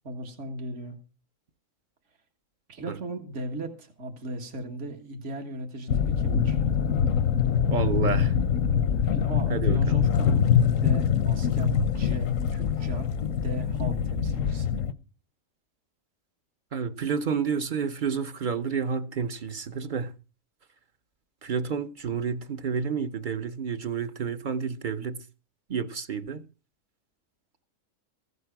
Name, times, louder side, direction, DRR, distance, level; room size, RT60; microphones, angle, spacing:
voice 1, 0.0-1.0 2.7-6.6 9.0-10.4 10.7-13.1 13.4-14.8, right 1 dB, 65° right, 2.0 m, -37 dB
sound 1, 5.9-14.9, left 8 dB, 80° left, 1.2 m, -24 dB
voice 2, 7.7-8.3 9.5-10.0 16.7-20.1 21.4-25.2 25.7-26.4, right 6 dB, 45° right, 0.8 m, -30 dB
15.5 x 8.1 x 5.9 m
omnidirectional pair, 1.3 m